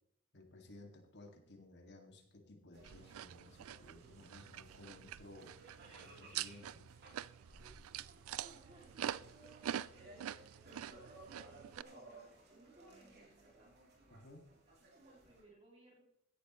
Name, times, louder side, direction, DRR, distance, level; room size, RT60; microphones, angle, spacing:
voice 1, 0.3-5.5 5.9-6.8 14.1-14.5, left 2 dB, 50° left, 3 dB, 2.2 m, -57 dB
sound 1, 2.7-15.4, right 2 dB, 50° right, 3.4 m, -60 dB
sound 2, 2.8-11.8, right 10 dB, 70° right, 0.4 m, -46 dB
voice 2, 8.3-14.0 14.8-16.0, right 2 dB, 25° right, -3 dB, 2.7 m, -63 dB
16.0 x 11.0 x 3.1 m, 0.79 s
head